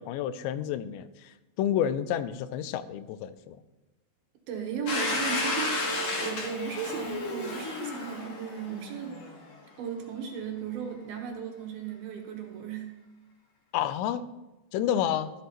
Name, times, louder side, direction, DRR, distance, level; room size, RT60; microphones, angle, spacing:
voice 1, 0.0-3.6 13.7-14.3 14.7-15.3, left 10 dB, 90° left, 13 dB, 2.9 m, -30 dB
voice 2, 4.5-9.2 9.8-13.0, right 7 dB, 70° right, 2 dB, 2.9 m, -36 dB
Domestic sounds home sounds, 4.9-9.5, left 2 dB, 50° left, 2.2 m, -32 dB
14.0 x 11.5 x 3.0 m, 1.0 s
omnidirectional pair, 5.0 m